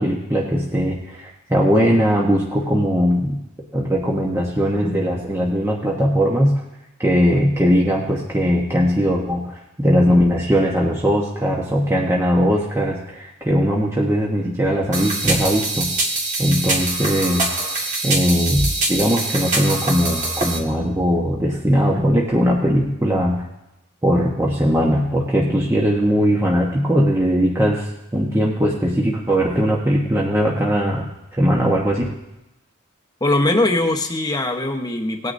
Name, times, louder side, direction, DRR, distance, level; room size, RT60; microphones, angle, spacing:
voice 1, 0.0-3.4 3.7-6.5 7.0-15.9 16.4-23.4 24.0-31.1 31.3-32.0, equal, 10° right, -3 dB, 1.1 m, -19 dB
sound 1, 14.9-20.6, right 2 dB, 35° right, 1.8 m, -24 dB
voice 2, 33.2-35.3, left 2 dB, 20° left, 4 dB, 1.1 m, -20 dB
18.0 x 9.6 x 2.7 m, 0.91 s
head